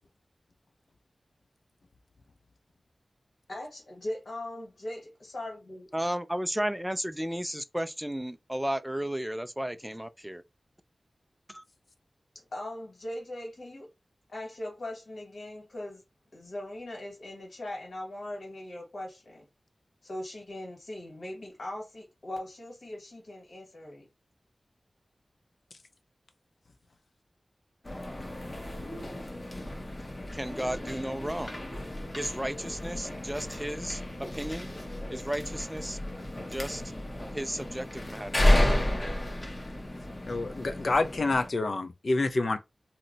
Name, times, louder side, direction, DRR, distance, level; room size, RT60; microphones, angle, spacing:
voice 1, 3.5-5.9 12.5-13.9 14.3-16.0 16.3-19.4 20.0-24.1, left 1 dB, 75° left, 1.6 m, -40 dB
voice 2, 5.9-10.4 11.5-11.6 30.3-31.5 32.1-34.0 34.3-34.7 35.1-36.0 36.5-36.8 37.3-38.3, equal, 5° right, 0.3 m, -33 dB
sound 1, 27.8-41.5, left 1 dB, 30° left, 0.8 m, -32 dB
voice 3, 40.3-42.6, left 3 dB, 55° left, 0.5 m, -27 dB
2.7 x 2.1 x 3.9 m
wide cardioid pair, 95°, 0 cm